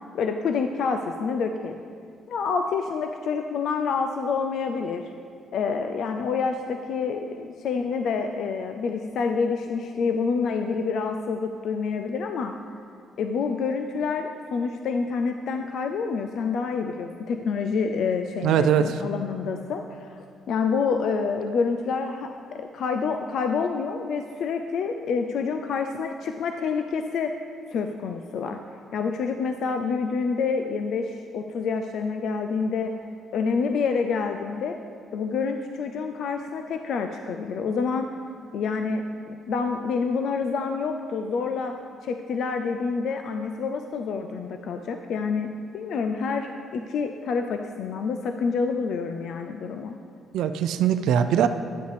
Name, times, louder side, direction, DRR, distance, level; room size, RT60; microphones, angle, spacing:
voice 1, 0.1-1.8 2.3-5.1 5.5-12.5 13.2-27.3 27.7-28.6 28.9-32.9 33.3-34.8 35.1-38.1 38.5-41.7 42.0-45.5 45.7-49.9, left 5 dB, 65° left, 5 dB, 0.4 m, -27 dB
voice 2, 18.4-19.0 50.3-51.5, right 9 dB, 80° right, 9 dB, 0.3 m, -21 dB
11.0 x 8.0 x 3.3 m, 2.3 s
cardioid pair, 115°, 0 cm